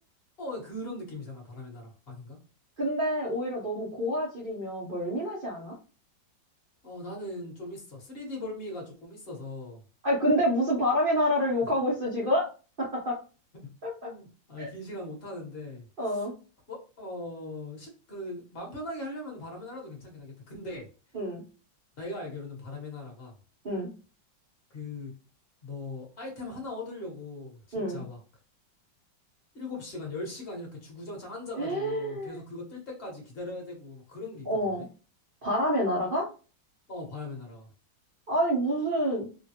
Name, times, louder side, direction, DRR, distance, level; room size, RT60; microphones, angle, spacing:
voice 1, 0.4-2.4 6.8-9.8 11.6-11.7 14.0-16.3 16.7-20.9 22.0-23.3 24.7-25.1 25.6-28.2 29.5-34.5 34.8-34.9 36.9-37.7, left 2 dB, 40° left, 0 dB, 0.9 m, -40 dB
voice 2, 2.8-5.8 10.0-12.5 12.8-13.2 13.8-14.1 14.6-14.7 16.0-16.3 21.1-21.4 23.6-23.9 27.7-28.0 31.6-32.4 34.5-34.9 35.4-36.3 38.3-39.3, equal, 85° right, -4 dB, 0.4 m, -28 dB
3.1 x 2.2 x 2.7 m, 0.34 s
omnidirectional pair, 2.1 m